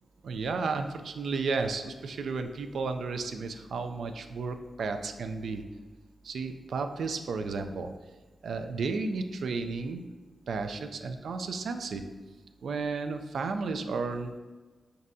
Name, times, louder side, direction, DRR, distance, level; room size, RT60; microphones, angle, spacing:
voice 1, 0.2-5.6 6.2-7.9 8.4-10.1 10.5-12.0 12.6-14.4, right 4 dB, 85° right, 7 dB, 0.3 m, -33 dB
5.2 x 2.7 x 2.6 m, 1.3 s
wide cardioid pair, 90°, 0 cm